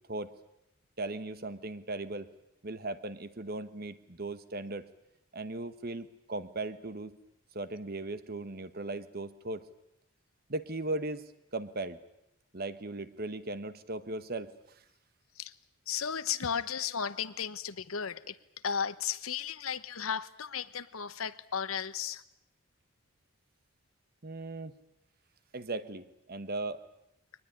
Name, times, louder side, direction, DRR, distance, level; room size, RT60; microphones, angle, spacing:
voice 1, 1.0-2.3 2.6-4.8 5.3-7.2 7.5-9.7 10.5-12.0 12.5-14.6 24.2-24.8 25.5-26.8, right 2 dB, 45° right, 13 dB, 1.2 m, -38 dB
voice 2, 15.9-18.4 18.6-22.2, left 7 dB, 85° left, 14 dB, 1.0 m, -34 dB
23.0 x 20.0 x 9.9 m, 0.85 s
head